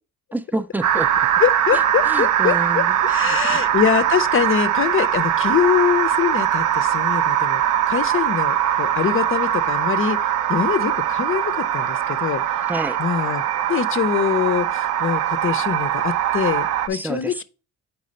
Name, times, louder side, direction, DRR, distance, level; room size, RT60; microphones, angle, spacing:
voice 1, 0.3-1.1 1.7-3.6 12.7-13.0 16.9-17.4, right 2 dB, 5° right, 0.4 m, -29 dB
sound 1, 0.8-16.9, right 10 dB, 80° right, 0.6 m, -21 dB
voice 2, 1.4-7.6 7.9-10.2 10.5-12.6 13.0-13.4 13.7-17.4, left 8 dB, 45° left, 0.5 m, -23 dB
4.7 x 4.2 x 5.1 m
cardioid pair, 90°, 30 cm